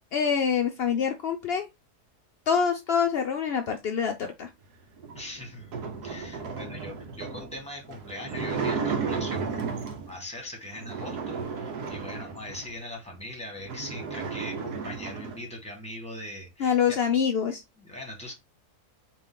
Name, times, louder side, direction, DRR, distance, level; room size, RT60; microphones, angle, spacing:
voice 1, 0.1-1.7 2.5-4.5 16.6-17.6, left 7 dB, 75° left, 0.5 m, -25 dB
sound 1, 5.0-10.2 10.7-12.8 13.3-13.4 13.6-15.4, right 5 dB, 85° right, 1.3 m, -34 dB
voice 2, 5.1-5.8 6.0-17.0 17.8-18.3, left 1 dB, 5° left, 1.3 m, -41 dB
4.2 x 2.9 x 3.6 m
omnidirectional pair, 1.7 m